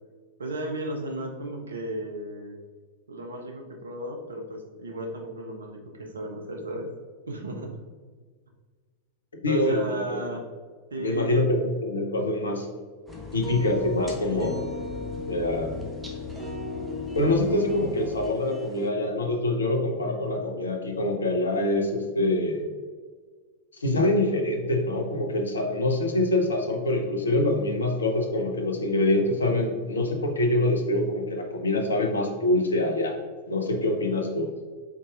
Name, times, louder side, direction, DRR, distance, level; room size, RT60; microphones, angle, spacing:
voice 1, 0.4-2.6 3.1-6.9 7.3-7.8 9.5-10.4 10.9-11.5 13.3-13.4 14.3-14.6, right 1 dB, 70° right, 2 dB, 0.7 m, -34 dB
voice 2, 9.4-10.0 11.0-12.7 13.3-14.6 15.3-15.7 17.1-22.7 23.8-33.2 33.5-34.5, left 1 dB, 75° left, 3 dB, 0.6 m, -25 dB
sound 1, 13.1-18.3, left 4 dB, 30° left, 0.4 m, -40 dB
sound 2, 13.1-18.9, left 2 dB, 10° right, 0.8 m, -37 dB
4.7 x 4.1 x 2.4 m, 1.5 s
figure-of-eight pair, 90°, 0 cm